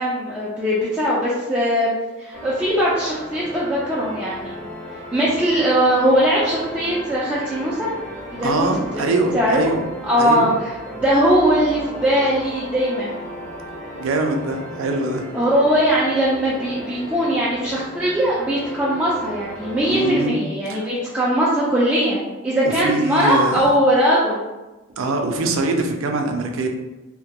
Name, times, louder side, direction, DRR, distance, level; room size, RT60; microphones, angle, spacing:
voice 1, 0.0-1.9 2.2-4.5 5.1-7.9 8.3-9.0 9.3-9.6 10.0-13.1 15.3-24.4, equal, 5° right, -9 dB, 0.3 m, -20 dB
sound 1, 2.3-20.2, equal, 40° left, 0.6 m, -35 dB
voice 2, 8.4-9.8 10.2-10.5 14.0-15.2 19.9-20.4 20.7-20.8 22.6-23.7 25.0-26.7, right 2 dB, 85° right, 4 dB, 0.4 m, -23 dB
2.2 x 2.2 x 2.7 m, 1.1 s
head